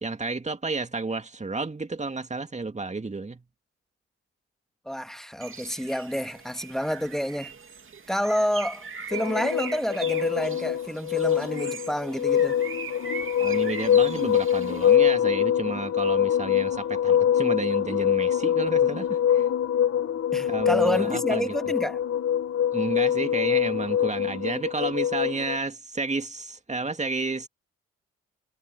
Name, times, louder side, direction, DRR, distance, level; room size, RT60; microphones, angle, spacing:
voice 1, 0.0-3.4 13.4-19.5 20.5-21.5 22.7-27.5, right 3 dB, 25° right, 2.3 m, -31 dB
voice 2, 4.9-7.5 8.1-12.6 20.3-22.0, equal, ahead, 2.4 m, -29 dB
Bird, 5.4-15.0, right 5 dB, 45° right, 2.7 m, -40 dB
sound 1, 9.1-25.6, left 9 dB, 55° left, 2.5 m, -24 dB
supercardioid pair, 50°, 30 cm